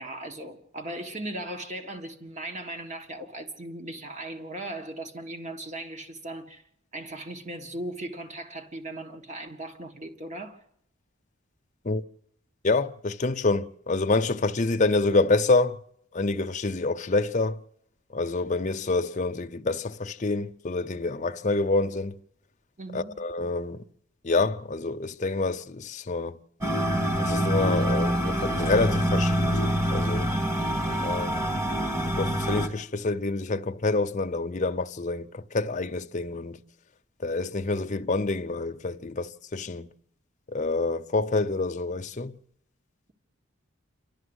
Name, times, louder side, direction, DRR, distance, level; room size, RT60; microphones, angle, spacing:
voice 1, 0.0-6.6 6.9-10.6 22.8-23.1, right 1 dB, 35° right, 1.7 m, -38 dB
voice 2, 12.6-15.8 16.1-17.6 18.1-22.2 22.9-23.8 24.2-26.4 27.2-30.3 31.0-31.4 32.1-36.6 37.2-39.9 40.5-42.4, left 3 dB, 35° left, 0.7 m, -27 dB
sound 1, 26.6-32.7, equal, 15° right, 2.0 m, -25 dB
28.0 x 12.0 x 8.1 m
head